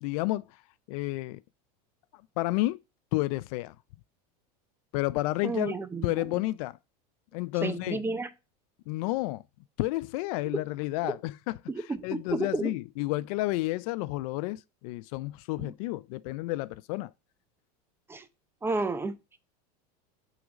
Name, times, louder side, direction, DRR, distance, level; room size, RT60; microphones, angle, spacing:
voice 1, 0.0-0.4 0.9-1.4 2.4-2.8 3.1-3.7 4.9-5.8 6.0-6.8 7.3-8.1 8.9-9.4 9.8-11.6 12.0-17.1, left 19 dB, 60° left, 0.4 m, -31 dB
voice 2, 5.4-6.2 7.6-8.3 11.7-12.7 15.6-15.7 18.1-18.3 18.6-19.2, right 3 dB, 10° right, 0.7 m, -31 dB
6.0 x 3.9 x 6.2 m
supercardioid pair, 135°, 21 cm